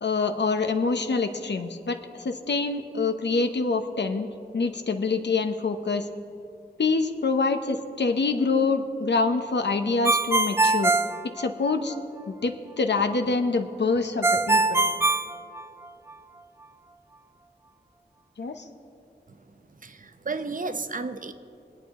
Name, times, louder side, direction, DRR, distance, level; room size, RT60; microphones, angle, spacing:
voice 1, 0.0-6.1 6.8-10.9 11.2-11.9 12.3-14.8 18.4-18.7, left 4 dB, 80° left, 7 dB, 0.8 m, -26 dB
Ringtone, 10.0-12.0 14.2-16.1, right 3 dB, 15° right, 0.3 m, -23 dB
voice 2, 19.3-21.3, right 3 dB, 50° right, 9 dB, 0.7 m, -34 dB
23.0 x 8.9 x 3.7 m, 2.7 s
wide cardioid pair, 80°, 18 cm